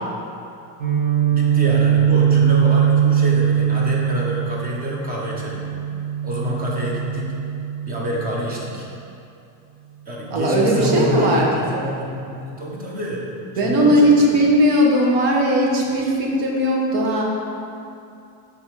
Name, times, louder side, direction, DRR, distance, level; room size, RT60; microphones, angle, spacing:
Guitar, 0.8-8.6, right 9 dB, 45° right, 1.2 m, -21 dB
voice 1, 1.3-5.7 6.2-7.3 7.8-8.9 10.1-13.3 13.5-14.4, left 1 dB, 20° right, -3 dB, 0.8 m, -27 dB
voice 2, 10.3-11.5 13.6-17.2, equal, 75° right, -1 dB, 1.2 m, -17 dB
5.5 x 3.6 x 4.8 m, 2.6 s
cardioid pair, 160°, 42 cm